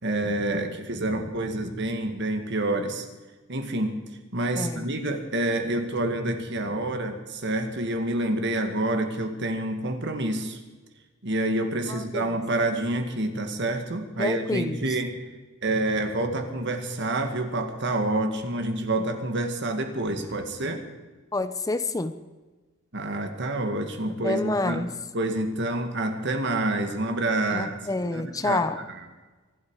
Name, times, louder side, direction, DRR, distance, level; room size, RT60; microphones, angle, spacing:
voice 1, 0.0-3.1 3.5-4.0 4.3-10.6 11.2-15.1 15.6-20.8 22.9-27.8 28.1-28.6 28.9-29.0, right 1 dB, 60° right, 6 dB, 2.0 m, -28 dB
voice 2, 11.9-12.4 14.2-14.8 21.3-22.2 24.2-24.9 27.5-28.8, left 2 dB, 15° left, 11 dB, 0.6 m, -28 dB
24.0 x 12.0 x 4.9 m, 1.3 s
head